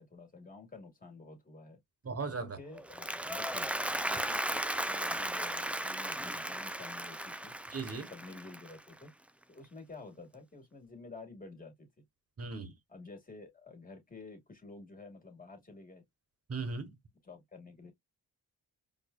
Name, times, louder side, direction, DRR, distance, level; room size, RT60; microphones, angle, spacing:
voice 1, 0.0-1.8 2.4-3.7 4.1-4.6 4.9-7.5 8.1-9.1 9.5-11.9 12.9-16.0 17.2-17.9, left 3 dB, 20° left, 1.9 m, -50 dB
voice 2, 2.0-2.6 7.7-8.1 12.4-12.7 16.5-16.9, right 4 dB, 35° right, 1.0 m, -37 dB
Applause, 2.7-9.1, right 1 dB, 5° right, 0.3 m, -36 dB
4.6 x 2.5 x 2.2 m
cardioid pair, 60°, 41 cm